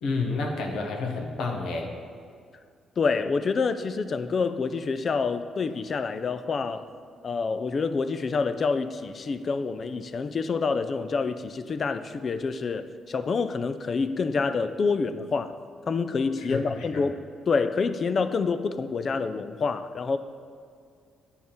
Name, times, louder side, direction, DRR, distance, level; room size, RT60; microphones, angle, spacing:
voice 1, 0.0-1.9 16.5-17.0, left 3 dB, 80° left, 1 dB, 1.0 m, -30 dB
voice 2, 3.0-6.8 7.2-15.6 15.9-17.2 17.5-20.2, left 4 dB, 45° left, 11 dB, 0.4 m, -27 dB
10.0 x 3.5 x 4.4 m, 2.2 s
cardioid pair, 90°, 0 cm